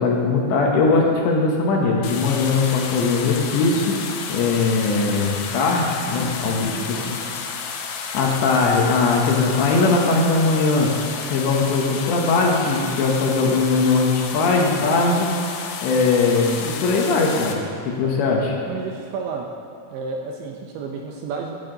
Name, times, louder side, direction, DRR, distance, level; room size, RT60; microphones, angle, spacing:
voice 1, 0.0-3.9 4.3-7.2 8.1-10.9 11.3-15.3 15.8-18.5, left 3 dB, 70° left, -1 dB, 3.0 m, -20 dB
sound 1, 2.0-17.5, left 6 dB, 85° left, 3.7 m, -31 dB
voice 2, 6.6-7.3 18.0-18.1 18.7-19.5 19.9-21.6, right 5 dB, 80° right, 1 dB, 2.8 m, -32 dB
17.5 x 12.0 x 3.9 m, 2.4 s
omnidirectional pair, 6.0 m